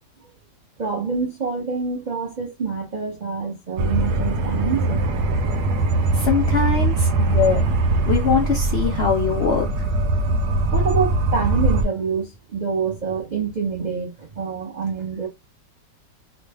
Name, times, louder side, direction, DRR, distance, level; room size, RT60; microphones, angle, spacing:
voice 1, 0.8-5.1 8.3-8.4 10.7-15.3, right 5 dB, 85° right, 0.4 m, -26 dB
sound 1, 3.8-11.8, right 2 dB, 70° right, 1.1 m, -21 dB
voice 2, 6.1-7.7 8.1-9.9, left 6 dB, 70° left, 0.6 m, -22 dB
3.1 x 2.0 x 3.4 m
omnidirectional pair, 1.9 m